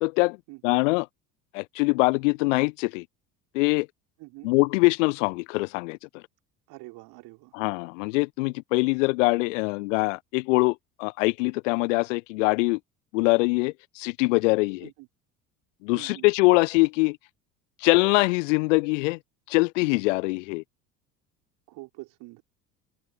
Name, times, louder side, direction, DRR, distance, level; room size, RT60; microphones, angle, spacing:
voice 1, 0.0-0.4 0.6-1.1 1.5-3.0 3.5-3.9 4.4-6.2 7.5-12.8 13.1-14.9 15.8-17.2 17.8-19.2 19.5-20.6, left 26 dB, 55° left, 0.6 m, -23 dB
voice 2, 4.2-4.5 6.7-7.6 14.8-15.1 15.9-16.3 21.7-22.4, right 23 dB, 50° right, 3.0 m, -45 dB
open air
figure-of-eight pair, 65°, 47 cm